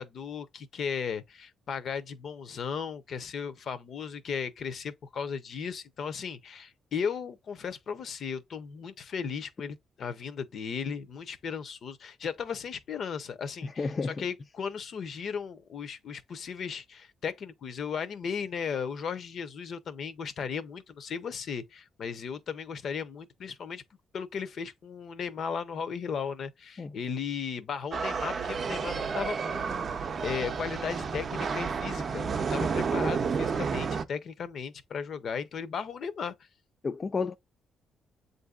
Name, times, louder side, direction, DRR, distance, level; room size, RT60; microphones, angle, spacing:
voice 1, 0.0-23.8 24.1-36.3, left 6 dB, 60° left, 0.7 m, -36 dB
voice 2, 13.6-14.2 26.8-27.0 36.8-37.4, left 4 dB, 35° left, 0.3 m, -31 dB
sound 1, 27.9-34.0, right 5 dB, 45° right, 0.5 m, -31 dB
7.6 x 2.6 x 2.3 m
cardioid pair, 90°, 0 cm